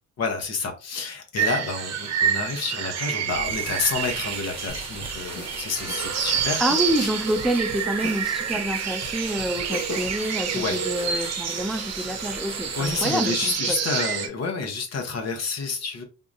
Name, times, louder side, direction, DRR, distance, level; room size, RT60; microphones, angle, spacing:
voice 1, 0.2-6.6 6.9-7.2 10.5-10.8 12.7-16.0, left 4 dB, 60° left, 0.9 m, -29 dB
sound 1, 1.4-14.3, right 7 dB, 60° right, 0.7 m, -28 dB
sound 2, 3.3-13.7, right 2 dB, 20° right, 0.9 m, -40 dB
sound 3, 4.7-10.3, left 1 dB, 80° left, 1.2 m, -39 dB
voice 2, 6.6-13.8, right 1 dB, ahead, 0.3 m, -27 dB
3.6 x 2.8 x 2.5 m
cardioid pair, 90°, 30 cm